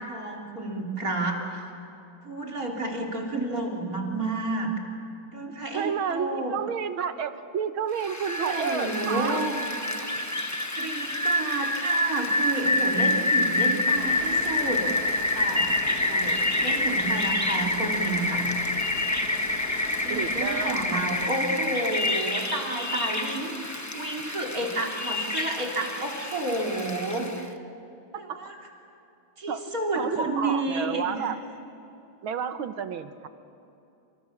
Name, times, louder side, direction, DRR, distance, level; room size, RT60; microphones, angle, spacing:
voice 1, 0.0-1.6 2.2-4.7 5.3-6.6 8.1-9.6 10.1-10.4 10.7-14.9 15.4-18.5 20.0-27.6 28.2-28.6 29.4-31.2, right 2 dB, 45° right, 0 dB, 4.0 m, -31 dB
voice 2, 5.5-9.4 20.1-21.4 21.9-22.0 28.1-28.4 29.5-31.4 32.2-33.3, right 7 dB, 80° right, 10 dB, 2.0 m, -31 dB
Rain, 8.0-27.4, left 2 dB, 10° left, 0.9 m, -27 dB
sound 1, 13.9-21.3, left 4 dB, 50° left, 2.0 m, -41 dB
29.0 x 27.0 x 7.4 m, 2.9 s
omnidirectional pair, 2.2 m